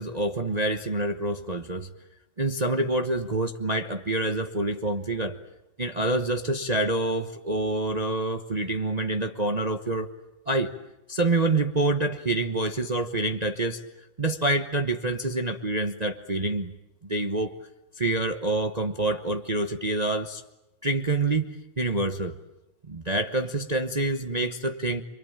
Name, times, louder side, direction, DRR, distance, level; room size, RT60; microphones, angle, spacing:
voice 1, 0.0-1.9 2.4-5.4 5.8-10.1 10.5-10.7 11.1-13.8 14.2-16.7 17.0-17.6 18.0-20.4 20.8-22.4 22.9-25.0, right 2 dB, 25° right, 5 dB, 1.0 m, -27 dB
28.0 x 23.5 x 8.9 m, 0.94 s
omnidirectional pair, 2.1 m